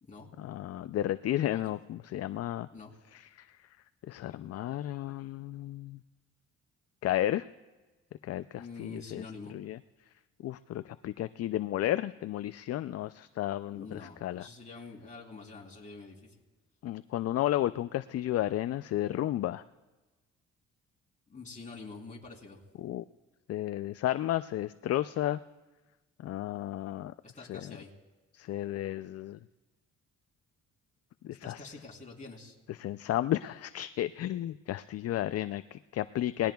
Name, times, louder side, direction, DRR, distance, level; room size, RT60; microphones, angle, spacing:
voice 1, 0.4-2.7 3.1-3.5 4.1-6.0 7.0-7.4 8.2-9.8 10.4-14.5 16.8-19.6 22.8-23.0 23.5-25.4 26.2-27.1 27.5-27.7 28.3-29.4 31.2-31.7 32.7-36.5, left 13 dB, 55° left, 12 dB, 0.4 m, -33 dB
voice 2, 8.6-9.5 13.7-16.3 21.3-22.6 27.2-27.9 31.4-32.6, left 3 dB, 25° left, -2 dB, 3.5 m, -46 dB
28.0 x 19.5 x 2.3 m, 1.2 s
cardioid pair, 90°, 30 cm